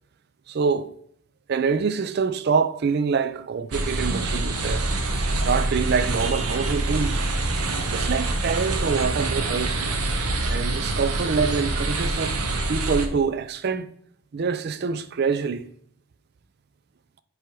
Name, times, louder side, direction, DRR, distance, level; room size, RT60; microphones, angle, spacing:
voice 1, 0.5-0.9 1.5-4.9 5.3-7.3 7.9-9.8 10.5-12.4 12.7-13.9 14.3-15.7, right 5 dB, 45° right, 0.4 m, -25 dB
sound 1, 3.7-13.1, right 2 dB, 80° right, 1.0 m, -25 dB
7.5 x 3.5 x 4.6 m
head